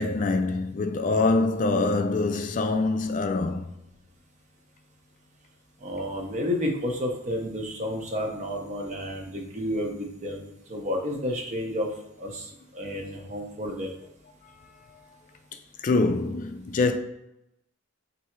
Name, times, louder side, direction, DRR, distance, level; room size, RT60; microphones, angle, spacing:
voice 1, 0.0-3.7 15.8-16.9, left 3 dB, 45° left, 0.4 m, -24 dB
voice 2, 5.8-11.9 12.2-13.9, left 1 dB, 40° right, 0.8 m, -31 dB
3.4 x 2.7 x 4.4 m
head